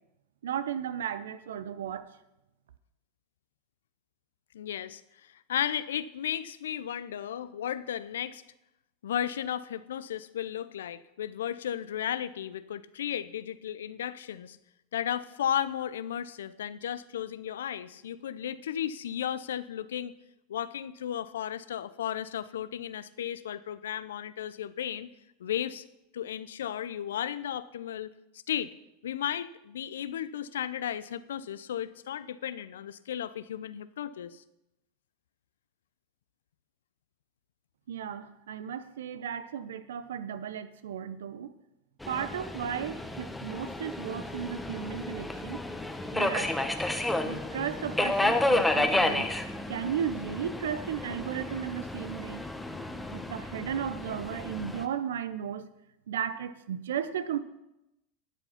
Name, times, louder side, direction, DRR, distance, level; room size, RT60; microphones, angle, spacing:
voice 1, 0.4-2.1 37.9-41.5 42.1-45.6 46.1-46.7 47.2-49.3 49.7-52.4 53.1-55.7 56.1-57.4, right 8 dB, 80° right, 13 dB, 0.7 m, -35 dB
voice 2, 4.5-8.4 9.0-14.6 14.9-20.1 20.5-25.1 25.4-25.8 26.1-28.1 28.5-28.7 29.0-34.4, left 10 dB, 80° left, 16 dB, 0.5 m, -34 dB
Subway metro underground, 42.0-54.8, left 2 dB, 5° left, 1.0 m, -31 dB
11.5 x 8.1 x 5.7 m, 0.91 s
hypercardioid pair, 100°, 0 cm